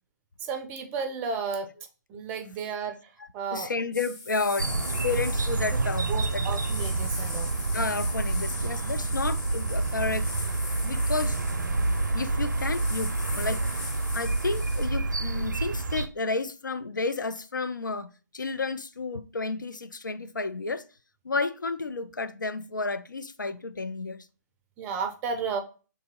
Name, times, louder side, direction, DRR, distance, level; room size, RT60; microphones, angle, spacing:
voice 1, 0.5-1.7 2.1-2.9 3.3-3.7 6.1-7.5 24.8-25.6, right 5 dB, 15° right, 0.4 m, -32 dB
voice 2, 3.2-6.5 7.7-10.3 10.8-11.4 12.1-13.6 14.1-20.8 21.2-24.3, left 3 dB, 85° left, 0.4 m, -31 dB
sound 1, 3.9-14.9, left 3 dB, 25° left, 1.6 m, -40 dB
sound 2, 4.6-16.1, right 3 dB, 75° right, 0.5 m, -28 dB
3.0 x 2.7 x 3.6 m
figure-of-eight pair, 135°, 10 cm